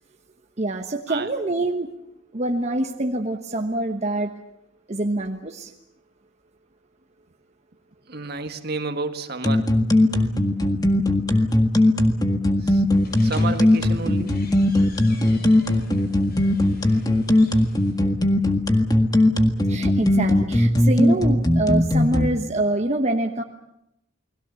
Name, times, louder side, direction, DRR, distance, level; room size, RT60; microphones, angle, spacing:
voice 1, 0.6-1.9 2.3-4.3 4.9-5.7 19.7-23.4, right 2 dB, 35° right, 3 dB, 1.2 m, -25 dB
voice 2, 8.1-9.7 12.6-12.8 13.2-14.3, right 3 dB, 55° right, 7 dB, 1.9 m, -30 dB
sound 1, 9.4-22.3, left 1 dB, 20° left, 1.8 m, -18 dB
sound 2, 12.9-17.9, left 1 dB, 50° left, 8.0 m, -44 dB
29.5 x 21.0 x 7.1 m, 0.83 s
head